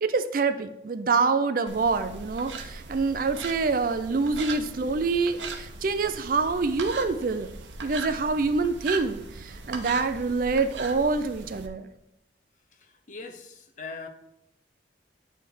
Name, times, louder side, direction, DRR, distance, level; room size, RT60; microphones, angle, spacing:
voice 1, 0.0-7.5 7.8-11.9, right 4 dB, 50° right, 10 dB, 0.4 m, -26 dB
sound 1, 1.7-11.7, right 3 dB, 85° right, 0.7 m, -39 dB
voice 2, 12.8-14.1, left 4 dB, 45° left, 7 dB, 0.6 m, -41 dB
9.1 x 3.3 x 4.7 m, 0.82 s
head